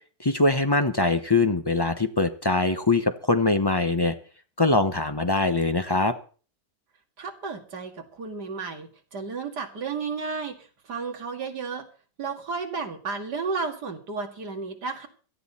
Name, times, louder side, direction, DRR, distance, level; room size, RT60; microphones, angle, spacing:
voice 1, 0.2-4.1 4.6-6.1, left 2 dB, 25° left, 8 dB, 0.5 m, -22 dB
voice 2, 7.2-11.9 12.2-15.1, right 4 dB, 70° right, 4 dB, 2.7 m, -33 dB
17.0 x 12.5 x 4.2 m, 0.39 s
omnidirectional pair, 1.8 m